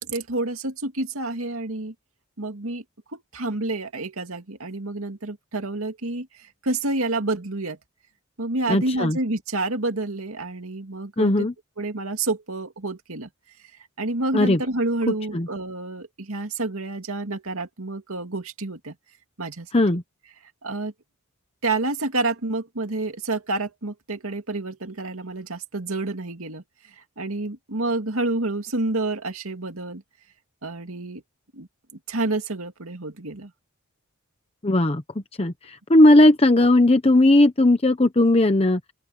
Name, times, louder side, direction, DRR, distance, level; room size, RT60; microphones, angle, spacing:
voice 1, 0.0-1.9 2.4-2.8 3.1-7.8 8.4-11.5 11.8-13.3 14.0-18.9 19.4-19.7 20.6-20.9 21.6-30.0 30.6-31.2 31.5-31.7 32.1-33.5, right 2 dB, 75° right, 2.4 m, -29 dB
voice 2, 8.7-9.2 11.2-11.5 14.3-14.6 15.3-15.5 19.7-20.0 34.6-35.0 35.4-38.8, left 1 dB, 25° left, 0.9 m, -17 dB
open air
head